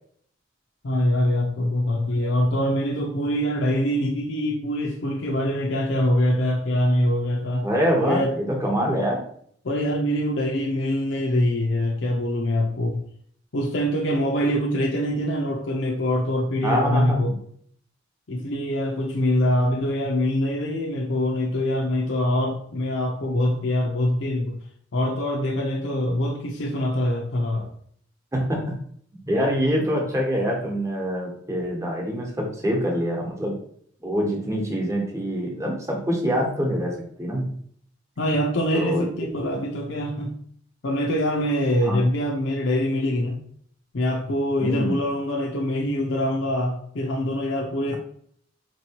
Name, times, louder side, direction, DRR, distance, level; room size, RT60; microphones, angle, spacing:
voice 1, 0.8-7.7 8.0-8.3 9.6-13.0 13.5-17.4 18.3-24.6 24.9-27.7 38.2-40.4 40.8-43.4 43.9-48.0, left 1 dB, 75° left, -1 dB, 0.6 m, -24 dB
voice 2, 7.6-9.2 16.6-17.3 28.3-28.7 29.3-33.6 34.0-36.9 37.2-37.4 38.7-39.1 41.8-42.0 44.6-45.0, equal, 15° right, -2 dB, 1.0 m, -25 dB
4.5 x 3.0 x 2.8 m, 0.62 s
head